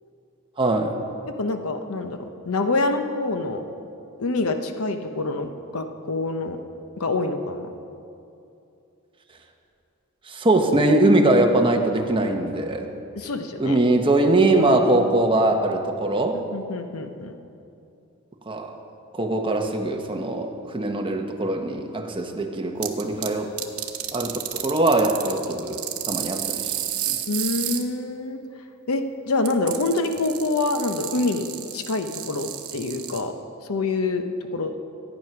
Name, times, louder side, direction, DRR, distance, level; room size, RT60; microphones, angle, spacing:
voice 1, 0.6-0.9 10.3-12.9 13.6-16.4 18.5-18.7 19.1-23.5 24.1-25.8 26.1-26.7 27.1-27.2, right 2 dB, 25° right, 3 dB, 1.0 m, -21 dB
voice 2, 1.4-3.6 4.2-6.6 7.0-7.7 13.2-13.8 16.5-17.3 27.3-28.4 28.9-31.5 31.7-33.3 33.7-34.3 34.5-34.7, left 3 dB, 85° left, 7 dB, 0.8 m, -26 dB
sound 1, 22.8-23.3 23.6-27.8 29.4-33.2, right 12 dB, 80° right, 0.9 m, -31 dB
14.0 x 9.1 x 5.9 m, 2.7 s
head